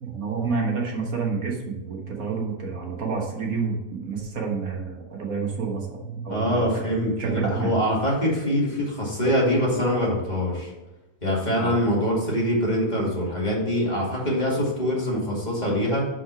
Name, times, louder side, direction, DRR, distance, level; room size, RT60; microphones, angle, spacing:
voice 1, 0.0-6.9 7.2-7.7 11.6-11.8, right 5 dB, 65° right, 0 dB, 1.8 m, -29 dB
voice 2, 6.3-10.7 11.2-16.1, equal, 30° left, -5 dB, 2.4 m, -24 dB
6.0 x 5.9 x 5.9 m, 1.0 s
omnidirectional pair, 1.6 m